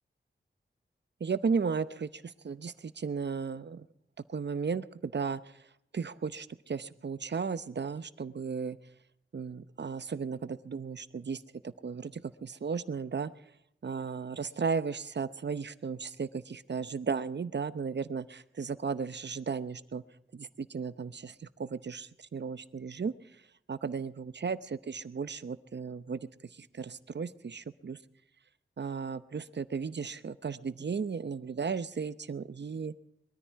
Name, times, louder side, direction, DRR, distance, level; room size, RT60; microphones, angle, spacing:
voice 1, 1.2-3.9 4.3-5.4 5.9-8.8 9.3-13.3 13.8-20.0 20.3-23.1 23.7-26.3 26.6-28.0 28.8-32.9, right 5 dB, 60° right, 14 dB, 0.8 m, -35 dB
22.0 x 13.5 x 4.7 m, 0.78 s
wide cardioid pair, 70°, 20 cm